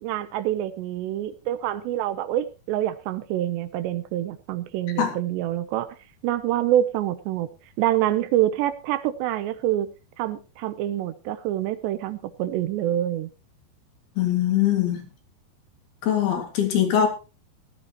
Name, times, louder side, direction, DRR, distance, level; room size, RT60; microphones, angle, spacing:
voice 1, 0.0-6.0 6.2-7.5 7.8-9.9 10.2-13.3, right 12 dB, 80° right, 3.0 m, -26 dB
voice 2, 14.2-15.0 16.0-17.1, left 10 dB, 65° left, 4.1 m, -22 dB
17.0 x 13.5 x 3.0 m
omnidirectional pair, 5.0 m